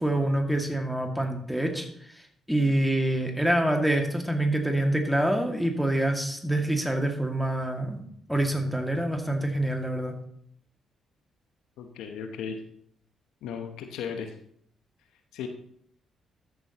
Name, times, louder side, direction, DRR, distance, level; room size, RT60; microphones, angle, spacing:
voice 1, 0.0-1.9 2.5-8.0 8.3-10.2, right 1 dB, ahead, 3 dB, 2.2 m, -26 dB
voice 2, 11.8-12.6 13.4-14.3 15.3-15.5, left 7 dB, 75° left, 6 dB, 0.9 m, -35 dB
13.5 x 7.6 x 3.0 m, 0.67 s
hypercardioid pair, 45°, 0 cm